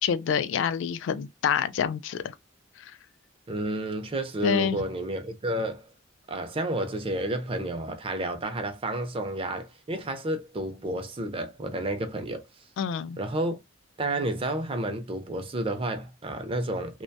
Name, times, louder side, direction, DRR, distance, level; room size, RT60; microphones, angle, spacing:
voice 1, 0.0-2.3 2.8-3.0 4.4-4.8 12.8-13.2, left 7 dB, 75° left, 0.3 m, -27 dB
voice 2, 3.5-5.9 6.3-12.5 13.2-13.6 14.0-17.0, right 1 dB, 30° right, 0.4 m, -31 dB
2.6 x 2.2 x 2.2 m
head